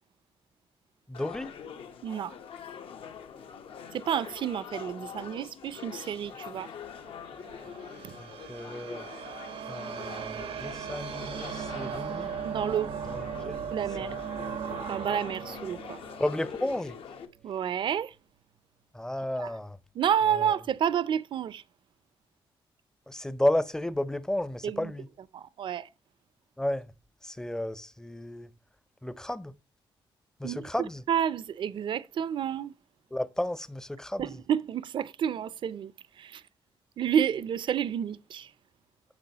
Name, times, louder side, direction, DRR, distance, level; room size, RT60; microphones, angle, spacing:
sound 1, 1.1-17.3, left 7 dB, 85° left, 1.0 m, -44 dB
voice 1, 1.1-1.6 8.2-9.1 9.7-12.3 13.0-13.7 14.0-14.1 14.4-14.6 16.2-17.0 18.9-19.8 20.3-20.5 23.1-25.1 26.6-26.9 27.2-28.5 29.0-29.6 30.4-31.0 33.1-34.3, left 1 dB, 5° left, 0.5 m, -33 dB
voice 2, 2.0-2.4 3.9-6.7 8.0-8.2 12.4-12.9 13.7-14.2 14.9-16.0 17.4-18.2 19.4-19.5 20.0-21.6 24.6-24.9 25.3-25.9 30.4-30.7 31.1-32.8 34.2-36.4 37.0-38.5, right 9 dB, 60° right, 0.5 m, -30 dB
sound 2, 6.8-17.1, right 7 dB, 90° right, 0.9 m, -38 dB
9.5 x 6.7 x 2.9 m
wide cardioid pair, 135°, 9 cm